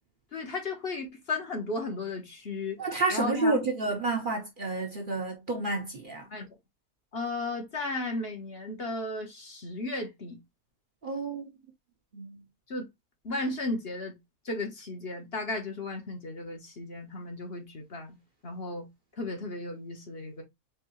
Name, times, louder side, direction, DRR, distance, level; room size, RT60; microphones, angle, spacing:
voice 1, 0.3-2.8 3.1-3.6 6.3-6.5 7.1-10.4 12.7-12.9 13.2-14.2 14.4-18.2 18.4-18.9 19.2-20.4, left 2 dB, 45° left, 1.3 m, -35 dB
voice 2, 2.8-6.3 11.0-11.4 12.1-12.4, right 3 dB, 40° right, 1.0 m, -30 dB
4.6 x 3.2 x 3.1 m
omnidirectional pair, 1.5 m